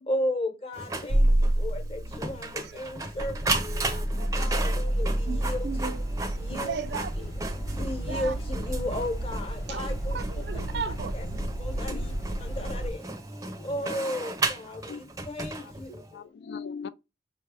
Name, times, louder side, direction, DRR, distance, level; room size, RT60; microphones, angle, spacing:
voice 1, 0.1-3.7 4.3-5.9 6.4-6.8 7.2-7.3 7.8-10.2 11.1-11.2 11.6-12.1 12.4-13.0 13.6-16.2, left 1 dB, 30° left, 0.9 m, -34 dB
Printer, 0.7-16.1, right 2 dB, 15° right, 0.5 m, -35 dB
sound 1, 1.1-3.5, right 1 dB, 85° right, 0.8 m, -26 dB
sound 2, 3.1-12.9, right 1 dB, 85° left, 1.0 m, -31 dB
voice 2, 3.9-4.9 5.2-6.0 6.3-7.1 7.4-7.8 8.0-8.3 9.7-11.5, right 5 dB, 65° right, 0.4 m, -38 dB
voice 3, 16.1-16.9, left 5 dB, 70° left, 0.3 m, -40 dB
5.2 x 2.3 x 3.3 m
head